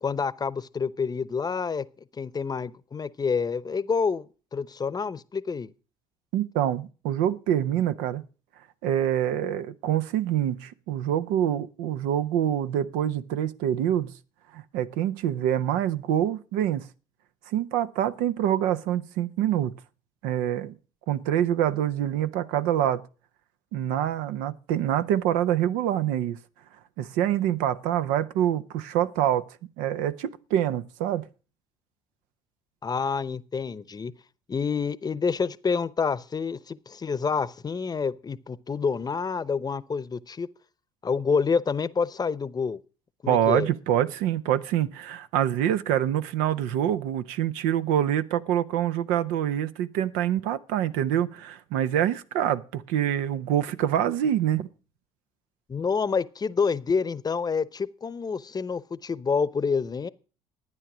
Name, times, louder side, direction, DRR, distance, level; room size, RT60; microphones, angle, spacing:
voice 1, 0.0-1.9 2.2-4.3 4.5-5.7 32.8-34.1 34.5-40.5 41.0-42.8 43.2-43.7 55.7-60.1, left 5 dB, 30° left, 0.8 m, -28 dB
voice 2, 6.3-8.2 8.8-14.1 14.5-16.9 17.5-19.8 20.2-20.8 21.1-23.0 23.7-26.4 27.0-29.4 29.8-31.3 43.3-54.7, right 11 dB, 80° right, 0.7 m, -26 dB
13.0 x 9.3 x 6.1 m
supercardioid pair, 70°, 13 cm